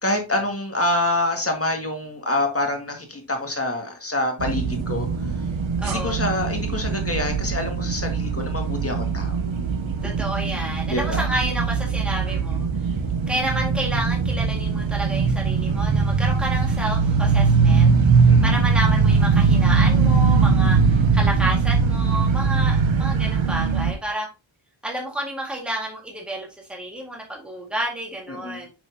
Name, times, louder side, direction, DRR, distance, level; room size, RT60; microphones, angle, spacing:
voice 1, 0.0-5.1 5.8-9.4 10.9-11.2 18.3-18.6 28.4-28.6, left 1 dB, 30° left, 3 dB, 1.8 m, -26 dB
sound 1, 4.4-23.9, right 5 dB, 80° right, 1.0 m, -21 dB
voice 2, 5.8-6.2 10.0-12.7 13.3-17.9 18.2-24.3 24.8-28.7, right 1 dB, ahead, -1 dB, 1.9 m, -30 dB
6.4 x 6.0 x 2.8 m, 0.28 s
wide cardioid pair, 90°, 46 cm